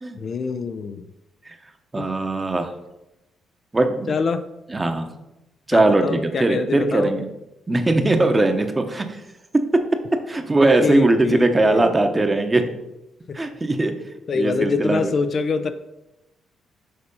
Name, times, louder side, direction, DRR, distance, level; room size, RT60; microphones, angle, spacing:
voice 1, 0.2-1.1 2.0-2.1 4.1-4.4 5.7-7.1 10.8-11.8 13.3-13.4 14.3-15.7, left 4 dB, 50° left, 9 dB, 0.5 m, -25 dB
voice 2, 1.9-2.7 3.7-4.1 4.7-5.1 5.7-7.2 7.7-9.2 10.3-12.6 13.3-13.9 14.3-15.1, right 2 dB, 20° right, 6 dB, 0.9 m, -20 dB
6.7 x 4.2 x 5.4 m, 0.93 s
cardioid pair, 85°, 0 cm